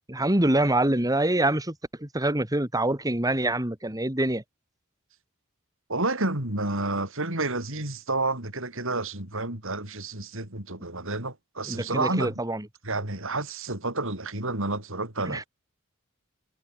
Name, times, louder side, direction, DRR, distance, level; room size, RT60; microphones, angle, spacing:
voice 1, 0.1-4.4 11.6-12.7 15.2-15.4, right 1 dB, 15° right, 3.1 m, -25 dB
voice 2, 5.9-12.3 12.8-15.5, right 2 dB, 65° right, 6.1 m, -30 dB
head